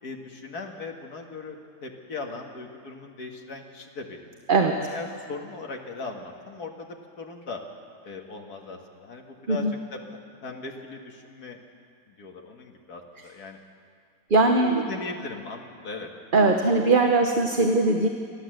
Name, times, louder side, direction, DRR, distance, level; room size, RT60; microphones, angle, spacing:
voice 1, 0.0-4.3 4.8-7.6 8.0-10.0 10.4-11.6 12.1-13.6 14.7-16.1, left 3 dB, 85° left, 2 dB, 2.3 m, -38 dB
voice 2, 14.3-14.8 16.3-18.1, right 3 dB, 40° right, 3 dB, 1.1 m, -20 dB
28.0 x 12.0 x 7.8 m, 2.2 s
omnidirectional pair, 1.6 m